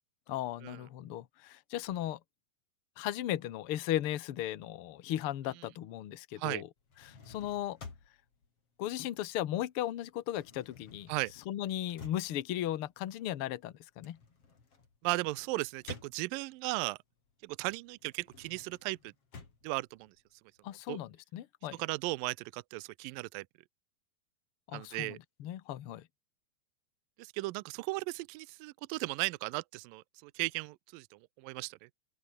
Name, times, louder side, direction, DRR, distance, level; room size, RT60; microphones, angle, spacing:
voice 1, 0.3-2.2 3.0-6.7 7.0-7.8 8.8-11.1 11.5-14.2 20.6-21.8 24.7-26.1, left 12 dB, 70° left, 1.3 m, -36 dB
sound 1, 6.8-9.6 9.9-16.7 17.2-20.7, left 5 dB, 40° left, 4.8 m, -53 dB
voice 2, 15.0-17.0 17.4-19.1 19.6-20.1 20.9-21.0 21.8-23.5 24.7-25.2 27.2-31.8, right 22 dB, 80° right, 2.3 m, -36 dB
open air
omnidirectional pair, 4.2 m